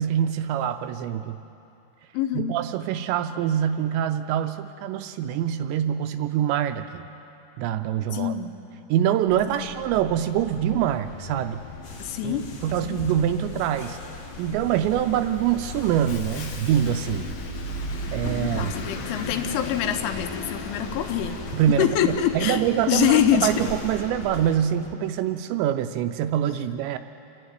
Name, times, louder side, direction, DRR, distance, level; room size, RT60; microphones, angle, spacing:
voice 1, 0.0-1.4 2.3-7.1 7.6-8.4 8.9-11.6 12.2-14.0 14.4-17.3 18.1-18.8 21.5-27.0, right 10 dB, 80° right, 9 dB, 2.6 m, -25 dB
voice 2, 2.1-2.5 8.1-8.6 9.5-9.7 12.0-12.5 12.8-13.0 18.4-21.4 21.7-22.6 22.9-23.5, left 10 dB, 85° left, 7 dB, 3.4 m, -25 dB
Bus, 9.3-24.6, left 2 dB, 65° left, 2.1 m, -37 dB
sound 1, 11.8-24.9, left 3 dB, 40° left, 2.8 m, -41 dB
28.5 x 11.0 x 9.4 m, 2.8 s
omnidirectional pair, 5.5 m